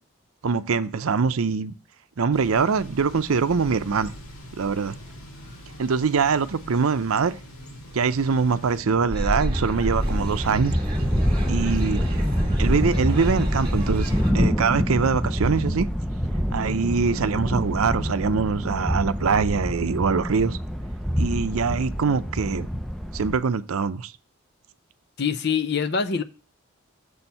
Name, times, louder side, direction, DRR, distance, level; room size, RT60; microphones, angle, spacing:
voice 1, 0.4-1.7 2.2-4.1 4.6-4.9 5.8-7.3 7.9-10.8 11.5-12.0 12.6-15.9 16.5-20.6 21.2-22.7 23.1-24.1, right 5 dB, 80° right, 0.5 m, -23 dB
Thunder / Bicycle, 2.3-8.8, equal, 90° left, 1.8 m, -43 dB
sound 1, 8.8-23.4, equal, ahead, 0.5 m, -26 dB
sound 2, 9.1-14.3, equal, 25° right, 2.4 m, -28 dB
voice 2, 25.2-26.2, left 6 dB, 50° left, 0.6 m, -24 dB
7.0 x 4.4 x 5.4 m
head